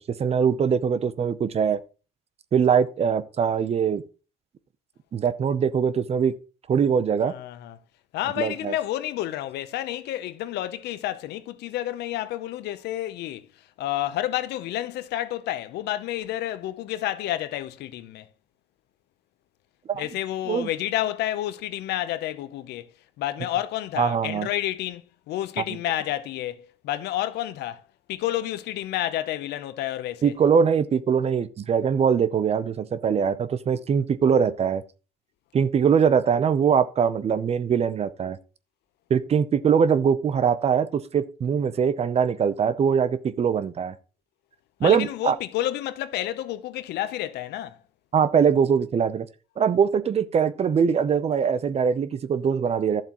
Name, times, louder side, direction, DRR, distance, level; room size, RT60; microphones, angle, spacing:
voice 1, 0.2-1.8 2.5-4.0 5.1-6.3 6.7-7.3 8.4-8.7 19.9-20.1 20.5-20.7 24.0-24.5 25.6-25.8 30.2-34.8 35.5-38.4 39.1-43.9 44.8-45.4 48.1-49.3 49.6-53.0, right 7 dB, 40° right, 0.7 m, -22 dB
voice 2, 7.2-7.8 8.1-13.5 13.8-18.3 19.9-27.8 28.1-30.3 44.8-47.8, left 13 dB, 80° left, 0.8 m, -30 dB
11.5 x 7.3 x 3.0 m
cardioid pair, 110°, 17 cm